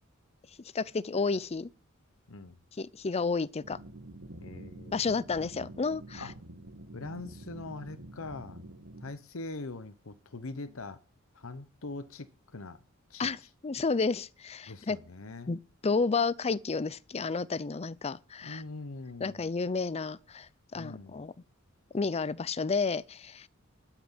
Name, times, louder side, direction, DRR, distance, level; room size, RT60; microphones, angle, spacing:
voice 1, 0.7-1.7 2.8-3.8 4.9-6.2 13.2-15.0 15.5-18.6 19.2-21.3 21.9-23.5, left 4 dB, 30° left, 0.5 m, -31 dB
sound 1, 3.6-9.1, right 1 dB, 85° right, 1.6 m, -47 dB
voice 2, 4.4-5.0 6.2-6.3 6.9-8.7 9.0-11.0 11.3-12.8 13.1-13.5 14.7-15.5 18.4-19.5 20.7-21.2, left 3 dB, 75° left, 0.9 m, -42 dB
12.5 x 6.0 x 9.0 m
head